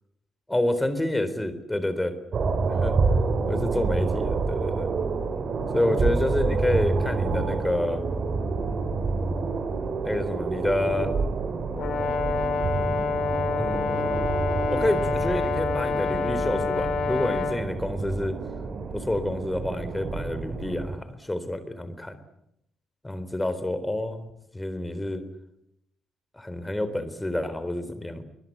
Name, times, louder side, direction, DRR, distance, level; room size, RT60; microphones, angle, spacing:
voice 1, 0.5-2.2 2.7-3.0 3.5-4.9 5.7-8.0 10.0-11.2 13.6-14.3 14.7-18.4 18.9-22.2 23.0-24.3 24.5-25.2 26.3-28.2, left 1 dB, 15° left, 12 dB, 4.1 m, -28 dB
sound 1, 2.3-21.0, right 4 dB, 50° right, 3.7 m, -28 dB
Brass instrument, 11.7-17.6, left 5 dB, 60° left, 4.0 m, -27 dB
22.5 x 21.0 x 9.6 m, 0.79 s
hypercardioid pair, 50°, 0 cm